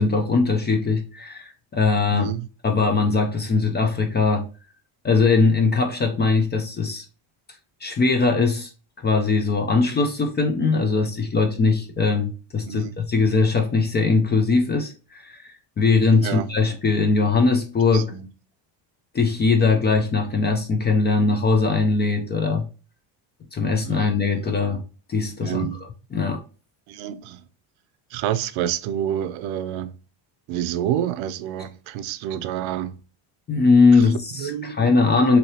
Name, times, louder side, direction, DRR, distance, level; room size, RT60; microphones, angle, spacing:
voice 1, 0.0-2.3 2.6-4.5 5.0-7.0 7.8-8.7 9.0-15.5 15.8-18.1 19.1-22.7 23.5-24.8 25.1-25.7 26.1-26.4 33.5-35.4, left 4 dB, 25° left, 0.3 m, -20 dB
voice 2, 2.1-2.5 12.7-12.9 16.2-16.5 17.9-18.3 23.8-24.1 24.4-24.5 25.4-25.8 26.9-27.4 28.1-30.0 30.5-33.0 33.9-34.0 34.4-34.9, right 10 dB, 75° right, 0.6 m, -28 dB
2.8 x 2.7 x 3.1 m
cardioid pair, 125°, 49 cm